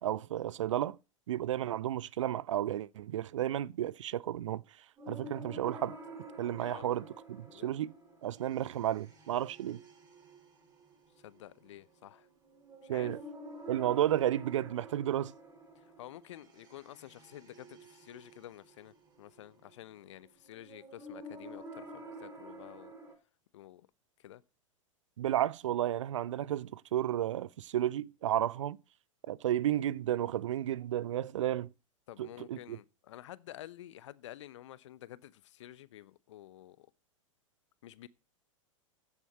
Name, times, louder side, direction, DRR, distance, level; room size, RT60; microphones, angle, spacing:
voice 1, 0.0-1.0 1.3-4.6 5.1-6.0 6.4-7.9 8.2-9.8 12.9-13.2 13.7-15.3 25.2-28.8 29.3-31.7 32.2-32.8, right 12 dB, 65° right, 0.5 m, -32 dB
sound 1, 5.0-23.1, right 1 dB, 20° right, 6.1 m, -50 dB
voice 2, 11.2-12.3 12.8-13.1 15.8-22.9 23.5-23.9 24.2-24.4 32.1-36.9 37.8-38.1, left 13 dB, 60° left, 0.9 m, -50 dB
14.5 x 7.4 x 4.5 m
figure-of-eight pair, 95°, 17 cm